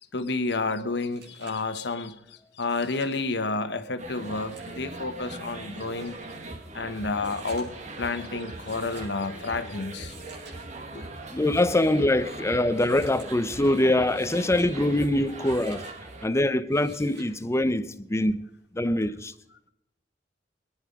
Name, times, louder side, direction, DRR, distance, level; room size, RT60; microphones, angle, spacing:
voice 1, 0.1-6.2 6.7-10.1 10.9-11.0, left 3 dB, 70° left, 1.2 m, -30 dB
sound 1, 0.6-0.7 1.0-1.7 2.6-3.3 4.1-4.8 5.8-6.3 7.1-7.9 8.7-9.2 9.9-10.6 11.4-12.0 12.8-13.3 13.9-14.7 15.4-15.9 16.7-17.3 18.7-18.8, right 4 dB, 85° right, 6.8 m, -51 dB
sound 2, 4.0-16.3, right 2 dB, 40° right, 1.8 m, -40 dB
voice 2, 11.3-15.9 16.2-18.4 18.7-19.3, left 1 dB, 15° left, 0.7 m, -24 dB
22.5 x 10.5 x 5.3 m
head